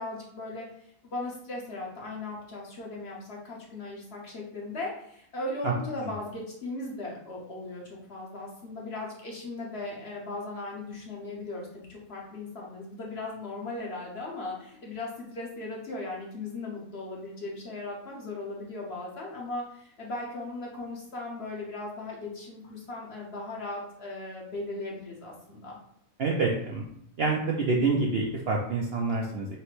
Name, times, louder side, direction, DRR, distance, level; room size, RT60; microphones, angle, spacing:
voice 1, 0.0-25.8, left 2 dB, 50° left, -2 dB, 1.0 m, -38 dB
voice 2, 26.2-26.8 27.2-29.5, right 3 dB, 60° right, -2 dB, 0.6 m, -27 dB
5.7 x 2.1 x 3.1 m, 0.68 s
omnidirectional pair, 1.5 m